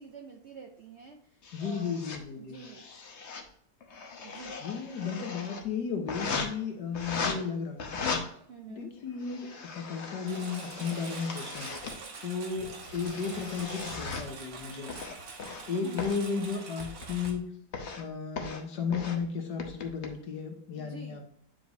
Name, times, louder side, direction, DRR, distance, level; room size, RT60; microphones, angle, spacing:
voice 1, 0.0-2.0 2.4-2.9 4.2-4.6 8.5-8.9 15.8-16.1 20.7-21.2, right 5 dB, 60° right, 3 dB, 0.7 m, -47 dB
sound 1, 1.4-2.2 2.5-3.4 3.8-5.6 6.1-6.5 6.9-7.3 7.8-8.2 9.0-12.0 12.6-14.3 14.9-15.6 16.0-16.2 16.8-17.3 17.7-18.0 18.4-18.6 18.9-19.2 19.6-20.1, left 5 dB, 45° left, 1.1 m, -38 dB
voice 2, 1.5-2.6 4.6-8.0 8.7-9.5 9.8-11.7 12.2-14.9 15.7-17.5 18.0-21.2, left 5 dB, 70° left, 3 dB, 1.7 m, -34 dB
Engine, 10.3-17.3, right 4 dB, 80° right, 1.9 m, -45 dB
9.3 x 4.9 x 2.7 m, 0.67 s
omnidirectional pair, 1.9 m